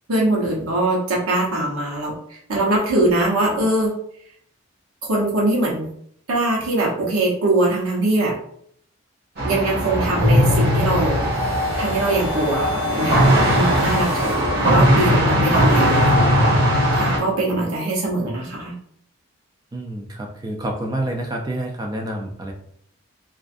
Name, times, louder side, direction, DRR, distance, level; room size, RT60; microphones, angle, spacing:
voice 1, 0.1-3.9 5.1-5.9 6.3-8.3 9.4-11.2 11.8-13.2 13.5-16.2 16.9-18.7, right 2 dB, 85° right, -4 dB, 0.8 m, -22 dB
sound 1, 9.4-17.2, equal, 45° right, 0.8 m, -18 dB
sound 2, 11.3-15.2, left 5 dB, 65° left, 0.6 m, -32 dB
voice 2, 19.7-22.5, right 1 dB, 20° right, 2 dB, 0.3 m, -28 dB
2.4 x 2.4 x 2.5 m, 0.67 s
head